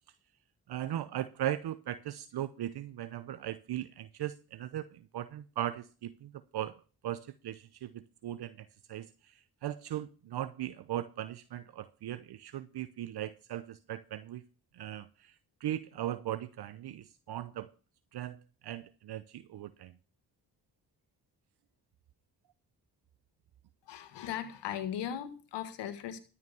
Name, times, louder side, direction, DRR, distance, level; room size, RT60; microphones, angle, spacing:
voice 1, 0.7-6.8 7.0-14.4 14.7-17.7 18.1-18.4 18.6-19.9, right 12 dB, 70° right, 14 dB, 0.8 m, -38 dB
voice 2, 23.9-26.2, left 10 dB, 90° left, 11 dB, 1.5 m, -38 dB
13.0 x 5.8 x 6.9 m, 0.36 s
supercardioid pair, 50°, 41 cm